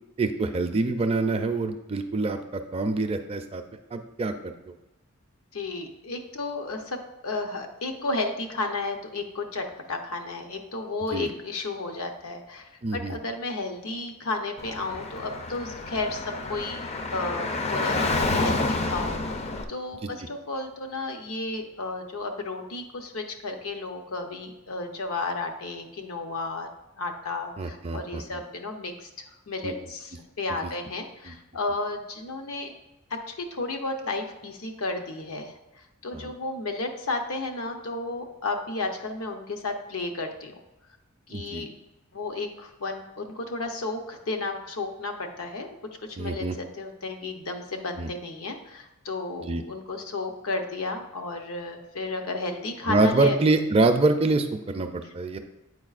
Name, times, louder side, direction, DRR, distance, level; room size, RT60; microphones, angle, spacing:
voice 1, 0.2-3.6 3.9-4.7 11.1-11.3 12.8-13.2 20.0-20.1 27.6-28.4 29.6-29.7 31.2-31.3 36.1-36.3 41.3-41.7 46.2-46.6 48.0-48.1 49.4-49.6 52.9-55.4, right 2 dB, 30° right, 7 dB, 0.4 m, -25 dB
voice 2, 5.5-7.0 7.2-16.8 17.1-26.7 27.0-29.1 29.5-32.7 33.1-35.6 36.0-40.6 41.3-41.7 42.1-45.7 46.0-46.4 46.8-53.4, left 3 dB, 80° left, 4 dB, 0.8 m, -33 dB
Car / Traffic noise roadway noise, 14.6-19.6, left 2 dB, 30° left, 0.4 m, -29 dB
8.3 x 4.6 x 2.4 m, 0.98 s
head